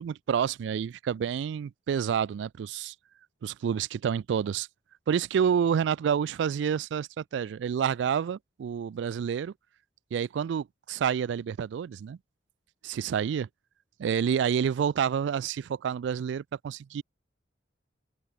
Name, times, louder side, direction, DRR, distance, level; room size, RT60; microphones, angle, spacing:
voice 1, 0.0-2.9 3.4-4.7 5.1-9.5 10.1-12.2 12.8-13.5 14.0-17.0, right 7 dB, 80° right, 0.3 m, -28 dB
head